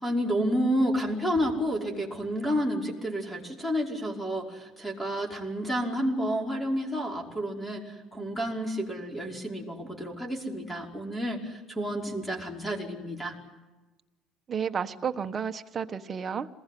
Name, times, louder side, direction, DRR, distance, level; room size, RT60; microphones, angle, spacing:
voice 1, 0.0-13.3, equal, 5° left, 1 dB, 5.4 m, -30 dB
voice 2, 14.5-16.5, right 7 dB, 25° right, 7 dB, 1.4 m, -31 dB
28.0 x 21.0 x 9.4 m, 1.1 s
cardioid pair, 150°, 0 cm